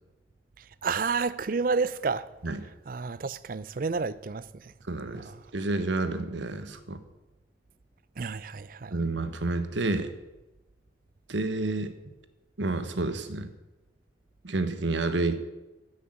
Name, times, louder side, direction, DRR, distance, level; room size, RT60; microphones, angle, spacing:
voice 1, 0.8-2.3 2.9-4.7 5.1-5.4 8.2-9.0, right 4 dB, 50° right, 0.5 m, -30 dB
voice 2, 4.9-7.0 8.9-10.1 11.3-11.9 12.6-13.5 14.4-15.4, right 2 dB, 90° right, 1.3 m, -29 dB
14.0 x 6.5 x 8.9 m
head